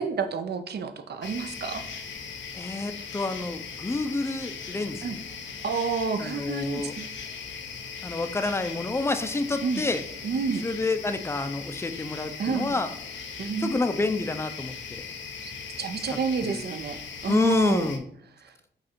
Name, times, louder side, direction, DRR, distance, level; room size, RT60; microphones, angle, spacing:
voice 1, 0.0-1.8 5.0-5.2 5.6-7.1 9.6-9.8 10.2-10.6 12.4-12.8 13.4-13.8 15.4-15.5 15.8-17.9 18.4-18.5, right 5 dB, 65° right, 9 dB, 0.5 m, -30 dB
sound 1, 1.2-18.0, left 5 dB, 90° left, 0.6 m, -39 dB
voice 2, 2.6-5.2 6.2-6.9 8.0-10.0 10.6-12.9 13.6-15.0 16.5-16.6 17.3-18.0, left 3 dB, 15° left, 10 dB, 0.4 m, -28 dB
5.0 x 2.4 x 4.4 m, 0.70 s
wide cardioid pair, 95°, 18 cm